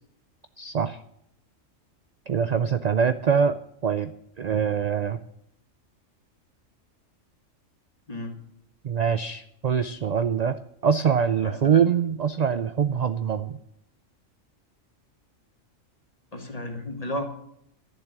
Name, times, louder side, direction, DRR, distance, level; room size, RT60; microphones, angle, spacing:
voice 1, 0.6-1.0 2.3-4.1 4.4-5.2 8.8-10.6 10.8-13.6, right 7 dB, 60° right, 11 dB, 0.4 m, -24 dB
voice 2, 11.4-11.8 16.3-17.2, left 1 dB, 30° left, 4 dB, 1.9 m, -33 dB
11.5 x 7.2 x 9.6 m, 0.73 s
omnidirectional pair, 1.4 m